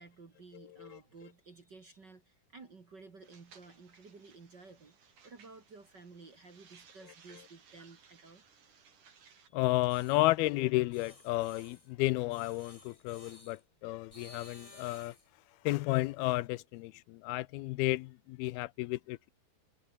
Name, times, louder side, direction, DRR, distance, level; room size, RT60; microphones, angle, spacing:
voice 1, 0.0-8.5 9.4-9.6 14.7-14.8, right 4 dB, 35° right, 2.1 m, -54 dB
voice 2, 0.5-1.0 9.5-15.2 15.6-19.3, left 19 dB, 85° left, 2.5 m, -32 dB
sound 1, 3.2-9.5, right 6 dB, 55° right, 5.0 m, -61 dB
sound 2, 9.9-10.3 10.9-11.9 12.3-13.6 14.1-15.3, left 2 dB, 15° left, 1.5 m, -55 dB
omnidirectional pair, 4.5 m